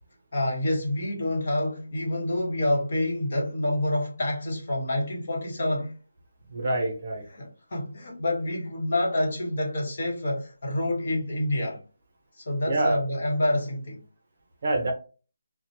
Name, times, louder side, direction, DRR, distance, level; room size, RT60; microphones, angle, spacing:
voice 1, 0.3-5.9 7.3-11.8 12.4-14.0, left 1 dB, 40° left, 1.0 m, -27 dB
voice 2, 6.5-7.3 12.7-13.0 14.6-14.9, right 2 dB, 35° right, 0.6 m, -26 dB
2.9 x 2.1 x 2.7 m
hypercardioid pair, 180°, 0 cm